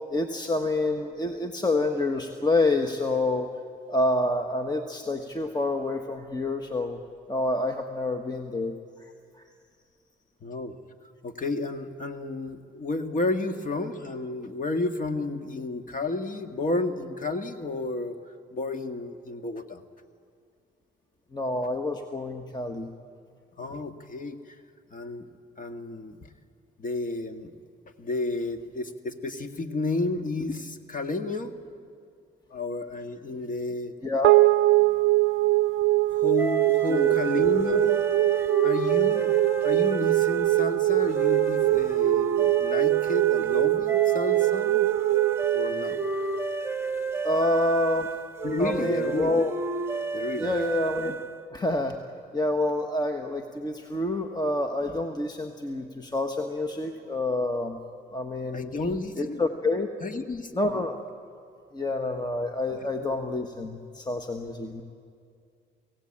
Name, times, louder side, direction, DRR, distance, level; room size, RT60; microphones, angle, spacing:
voice 1, 0.1-3.5 3.9-7.0 7.3-8.7 21.3-22.9 34.0-34.4 36.9-37.2 47.2-48.1 48.6-49.5 50.4-51.2 51.5-52.0 52.3-57.8 58.1-58.7 59.2-59.9 60.5-61.0 61.7-64.8, left 2 dB, 20° left, 5 dB, 1.4 m, -27 dB
voice 2, 10.4-10.8 11.2-18.2 18.5-19.8 23.6-24.6 24.9-25.3 25.6-26.2 26.8-27.5 28.0-31.5 32.5-33.9 36.1-38.0 38.6-39.3 39.6-44.9 45.5-46.0 48.4-49.3 50.1-50.5 58.5-59.4 60.0-60.8 63.0-63.2, left 2 dB, 40° left, 7 dB, 1.8 m, -31 dB
sound 1, 34.2-46.8, right 17 dB, 80° right, 0.5 m, -23 dB
sound 2, 36.4-51.4, right 4 dB, 10° right, 1.4 m, -32 dB
28.5 x 17.0 x 8.8 m, 2.3 s
cardioid pair, 90°, 20 cm